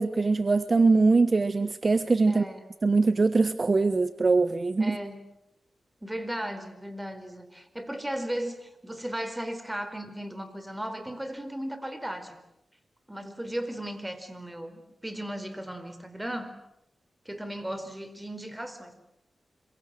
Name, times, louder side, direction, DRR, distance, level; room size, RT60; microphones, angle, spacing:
voice 1, 0.0-2.5 2.8-5.0, right 3 dB, 45° right, 12 dB, 1.2 m, -22 dB
voice 2, 2.3-2.6 4.8-5.3 6.0-12.4 13.1-16.5 17.2-18.9, right 1 dB, 10° right, 10 dB, 4.4 m, -36 dB
26.5 x 24.0 x 7.9 m, 0.79 s
cardioid pair, 60°, 0 cm